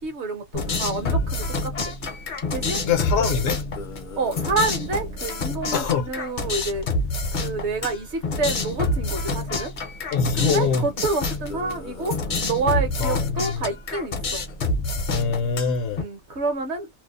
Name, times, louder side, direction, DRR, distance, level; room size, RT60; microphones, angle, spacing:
voice 1, 0.0-2.0 2.5-2.8 4.2-6.9 7.3-9.7 10.3-14.5 15.5-16.9, right 3 dB, 60° right, 0.9 m, -28 dB
sound 1, 0.5-16.0, left 2 dB, 45° left, 0.6 m, -28 dB
voice 2, 2.8-3.6 5.7-6.1 10.1-10.9 13.0-13.7 15.1-16.1, left 6 dB, 70° left, 0.9 m, -24 dB
2.6 x 2.0 x 2.3 m
omnidirectional pair, 1.5 m